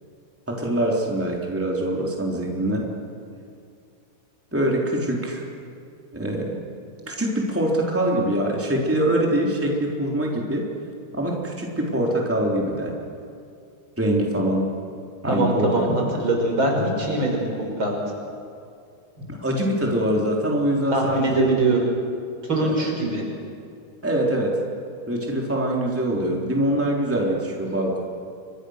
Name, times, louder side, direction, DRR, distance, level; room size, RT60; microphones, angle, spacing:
voice 1, 0.5-2.9 4.5-5.4 6.1-6.6 7.1-10.7 11.1-12.9 14.0-14.7 15.2-15.8 19.3-21.5 22.6-22.9 24.0-24.6 25.1-28.0, right 1 dB, 5° right, -2 dB, 3.5 m, -24 dB
voice 2, 15.2-17.9 20.9-21.9 22.5-23.2, right 2 dB, 65° right, 0 dB, 6.1 m, -22 dB
29.5 x 26.0 x 6.5 m, 2.4 s
omnidirectional pair, 2.4 m